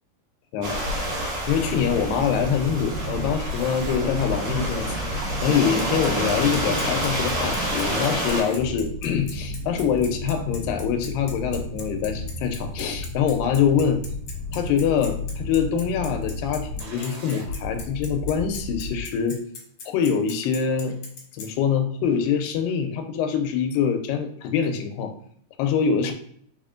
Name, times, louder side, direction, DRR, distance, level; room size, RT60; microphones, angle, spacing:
sound 1, 0.6-8.4, right 1 dB, 55° right, 1.7 m, -28 dB
voice 1, 1.5-4.9 5.4-14.0 14.5-19.4 19.9-20.9 21.3-25.1 25.6-26.1, left 7 dB, 85° left, 6 dB, 2.2 m, -24 dB
sound 2, 1.5-19.0, left 1 dB, 75° right, 1.6 m, -34 dB
Bicycle, 5.5-21.5, left 5 dB, 65° left, 1.8 m, -40 dB
4.7 x 4.3 x 2.4 m, 0.63 s
omnidirectional pair, 4.0 m